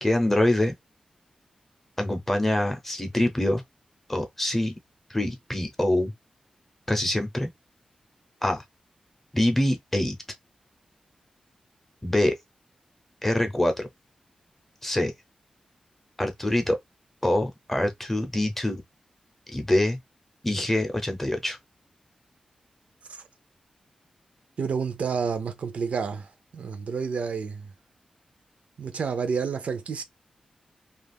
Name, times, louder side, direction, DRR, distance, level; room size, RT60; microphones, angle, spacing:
voice 1, 0.0-0.7 2.0-3.6 4.1-4.8 5.1-6.1 6.9-7.5 8.4-8.6 9.3-10.2 12.0-12.3 13.2-13.9 14.8-15.1 16.2-16.8 17.2-18.8 19.5-20.0 20.4-21.6, left 1 dB, 10° left, 0.7 m, -25 dB
voice 2, 24.6-27.7 28.8-30.0, right 5 dB, 70° right, 0.5 m, -30 dB
2.4 x 2.4 x 3.4 m
wide cardioid pair, 140°, 2 cm